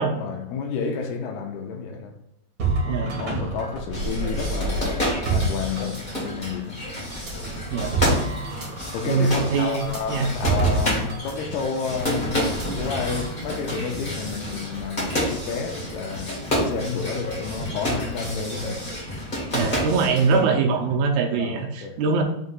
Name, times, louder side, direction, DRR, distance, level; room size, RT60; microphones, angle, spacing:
voice 1, 0.0-2.2 2.9-4.9 5.3-6.8 8.2-8.4 8.9-18.9 20.7-21.0 21.4-22.0, left 5 dB, 80° left, 2.5 m, -31 dB
sound 1, 2.6-6.5 7.1-11.3 11.6-11.8 12.4-13.3, right 3 dB, 60° right, 1.2 m, -28 dB
sound 2, 3.9-20.4, equal, 60° left, 0.5 m, -30 dB
voice 2, 9.1-9.8 10.1-10.3 19.5-22.2, right 5 dB, 80° right, 2.5 m, -22 dB
6.6 x 3.0 x 5.5 m
omnidirectional pair, 4.7 m